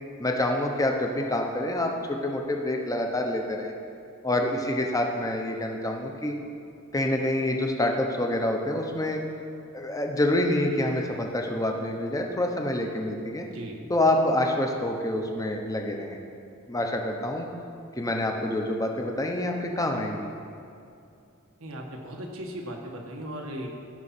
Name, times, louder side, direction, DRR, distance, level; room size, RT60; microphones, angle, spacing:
voice 1, 0.2-3.7 4.2-6.4 6.9-9.2 9.7-13.5 13.9-16.2 16.7-17.5 18.0-20.3, left 1 dB, 15° left, 2 dB, 0.9 m, -27 dB
voice 2, 13.5-13.9 21.6-23.7, equal, 85° right, 0 dB, 1.5 m, -37 dB
17.0 x 5.7 x 4.3 m, 2.6 s
head